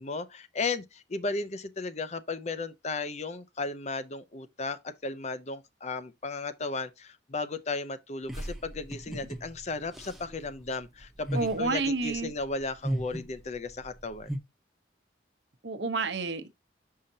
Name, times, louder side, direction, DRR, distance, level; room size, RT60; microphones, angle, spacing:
voice 1, 0.0-14.3, left 3 dB, 35° left, 0.6 m, -35 dB
sound 1, 8.3-14.4, right 1 dB, ahead, 0.8 m, -37 dB
voice 2, 11.3-12.3 15.6-16.5, right 3 dB, 70° right, 0.9 m, -29 dB
6.4 x 5.6 x 2.7 m
head